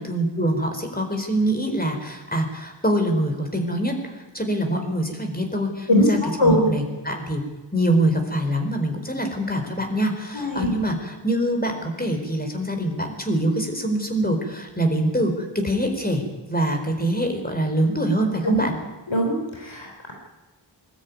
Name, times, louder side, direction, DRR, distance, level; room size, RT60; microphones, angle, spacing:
voice 1, 0.0-4.0 4.3-7.4 7.7-16.2 16.5-18.8, right 1 dB, 20° left, 4 dB, 4.4 m, -24 dB
voice 2, 5.9-6.7 10.3-10.7 18.4-18.6 19.1-20.1, left 1 dB, 75° left, 1 dB, 3.5 m, -21 dB
21.5 x 13.0 x 9.6 m, 1.2 s
wide cardioid pair, 45°, 46 cm